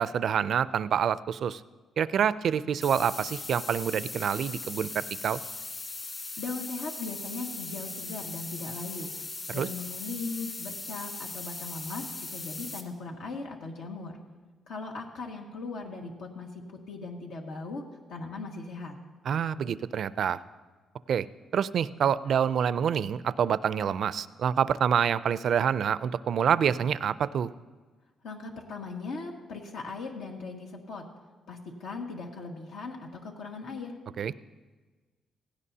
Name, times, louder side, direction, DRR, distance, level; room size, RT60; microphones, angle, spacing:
voice 1, 0.0-1.6 2.0-5.4 9.5-9.7 19.3-20.4 21.1-21.3 21.5-27.5 34.2-34.3, right 8 dB, 60° right, 16 dB, 0.4 m, -27 dB
sound 1, 2.8-12.8, left 3 dB, 35° left, 1.8 m, -39 dB
voice 2, 6.4-9.1 9.5-14.2 14.7-19.0 28.2-31.1 31.5-34.0, left 3 dB, 85° left, 1 dB, 1.7 m, -39 dB
17.0 x 16.5 x 2.8 m, 1.3 s
cardioid pair, 110°, 0 cm